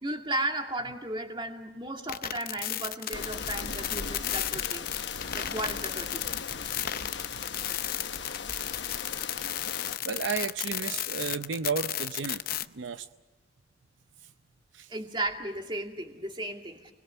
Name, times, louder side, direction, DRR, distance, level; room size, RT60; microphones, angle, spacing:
voice 1, 0.0-4.9 5.3-6.3 10.8-11.0 14.9-16.9, right 1 dB, 25° right, 3 dB, 2.4 m, -35 dB
sound 1, 2.1-12.7, left 12 dB, 50° left, 0.7 m, -33 dB
sound 2, 3.1-10.0, left 5 dB, 65° left, 1.1 m, -38 dB
voice 2, 10.0-13.1 14.2-14.3 14.7-14.9, right 5 dB, 80° right, 10 dB, 0.7 m, -33 dB
29.5 x 21.0 x 6.9 m, 1.3 s
head